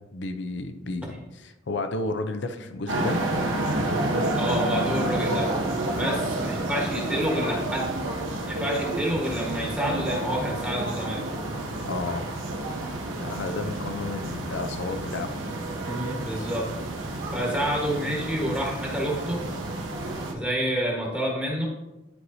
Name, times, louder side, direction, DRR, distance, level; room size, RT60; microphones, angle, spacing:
voice 1, 0.1-3.2 5.9-6.2 11.8-12.3 13.2-15.3 16.1-16.3, left 2 dB, 60° left, 8 dB, 0.6 m, -32 dB
sound 1, 2.9-20.3, right 2 dB, 85° right, 1.1 m, -30 dB
voice 2, 4.3-5.5 5.9-7.9 8.5-11.3 15.9-16.7 17.3-19.4 20.3-21.7, equal, 5° right, -3 dB, 1.4 m, -28 dB
11.0 x 4.6 x 2.7 m, 1.0 s
head